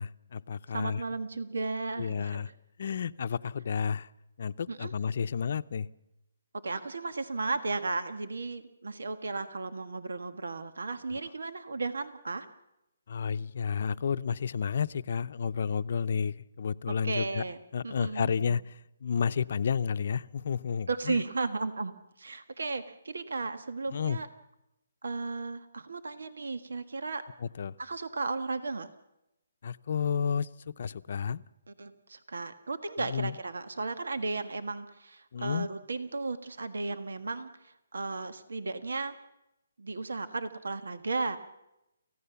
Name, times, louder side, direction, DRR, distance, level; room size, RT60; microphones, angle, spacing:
voice 1, 0.0-1.0 2.0-2.5 2.8-4.1 4.4-5.9 13.1-17.4 17.7-18.6 19.0-21.2 23.9-24.2 27.6-27.7 29.6-30.5 30.8-31.4 33.0-33.3 35.3-35.7, left 6 dB, 50° left, 12 dB, 0.7 m, -31 dB
voice 2, 0.7-2.5 4.7-4.9 6.6-12.5 16.9-17.6 17.8-18.5 20.9-24.3 25.0-27.2 27.8-28.9 31.7-39.1 39.8-41.4, right 3 dB, 85° right, 10 dB, 1.6 m, -35 dB
29.0 x 16.0 x 7.1 m, 0.89 s
hypercardioid pair, 165°, 0 cm